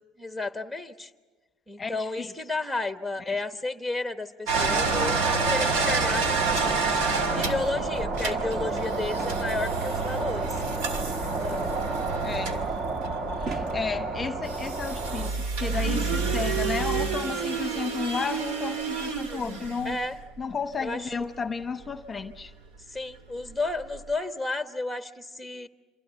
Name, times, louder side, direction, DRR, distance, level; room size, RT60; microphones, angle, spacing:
voice 1, 0.2-1.1 1.7-6.9 7.3-10.5 11.2-11.8 19.8-20.2 20.8-21.1 22.9-25.7, left 3 dB, ahead, 9 dB, 1.2 m, -32 dB
voice 2, 1.8-2.3 3.2-3.4 12.2-12.6 13.4-20.0 20.4-22.5, left 5 dB, 20° left, 10 dB, 1.0 m, -33 dB
sound 1, 4.5-15.3, right 3 dB, 45° right, 2.2 m, -31 dB
sound 2, 4.5-13.8 14.4-20.4 21.9-22.0 22.3-22.4 23.5-23.6 23.8-24.0, right 4 dB, 85° right, 2.6 m, -29 dB
27.5 x 26.0 x 8.2 m, 1.4 s
cardioid pair, 115°, 0 cm